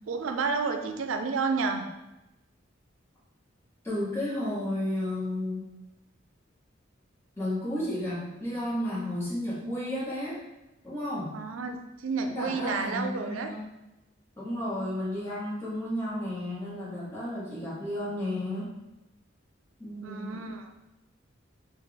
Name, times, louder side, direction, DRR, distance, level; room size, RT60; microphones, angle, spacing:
voice 1, 0.1-1.9 11.3-13.5 20.0-20.7, right 4 dB, 85° right, 6 dB, 0.4 m, -30 dB
voice 2, 3.8-5.7 7.4-10.4 10.8-11.4 12.2-13.6 14.4-18.7 19.8-20.4, left 1 dB, 15° left, -9 dB, 1.1 m, -32 dB
4.1 x 2.3 x 3.4 m, 0.95 s
head